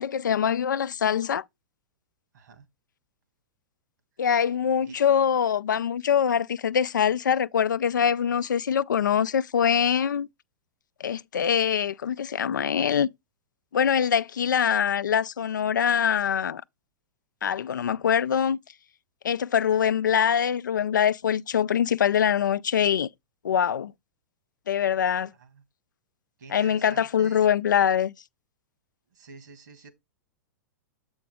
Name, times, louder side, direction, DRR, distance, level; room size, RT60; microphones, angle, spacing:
voice 1, 0.0-1.4 4.2-10.3 11.0-13.1 13.7-16.6 17.4-18.6 19.2-23.1 23.4-23.9 24.7-25.3 26.5-28.1, left 8 dB, 75° left, 0.4 m, -23 dB
voice 2, 2.3-2.7 4.8-5.0 25.4-25.6 26.4-27.5 29.1-29.9, right 4 dB, 70° right, 2.1 m, -48 dB
7.5 x 5.1 x 3.5 m
figure-of-eight pair, 105°, 10 cm